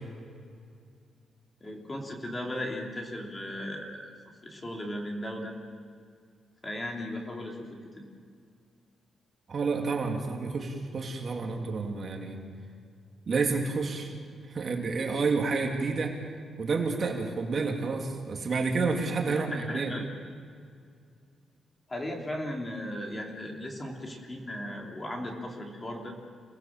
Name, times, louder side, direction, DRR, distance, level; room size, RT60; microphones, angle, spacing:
voice 1, 1.6-4.1 4.4-5.5 6.6-7.7 8.0-8.1 19.2-20.0 21.9-26.1, left 1 dB, 20° left, 1 dB, 3.2 m, -36 dB
voice 2, 9.5-12.4 13.3-14.1 14.5-16.1 16.6-19.9, right 4 dB, 40° right, 2 dB, 2.7 m, -29 dB
29.0 x 19.5 x 7.4 m, 2.2 s
wide cardioid pair, 165°, 0 cm